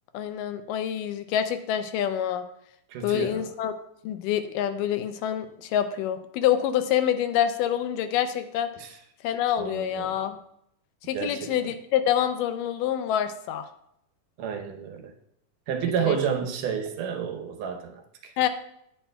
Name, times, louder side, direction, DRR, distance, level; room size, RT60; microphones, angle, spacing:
voice 1, 0.1-2.4 3.0-3.7 4.0-8.7 9.2-10.4 11.1-13.7 16.0-16.2 18.4-18.5, left 10 dB, 90° left, 9 dB, 2.2 m, -26 dB
voice 2, 2.9-3.4 8.8-9.0 9.6-10.1 11.1-11.5 14.4-15.1 15.7-18.3, right 7 dB, 80° right, 3 dB, 2.4 m, -30 dB
9.0 x 8.7 x 2.2 m, 0.75 s
omnidirectional pair, 3.7 m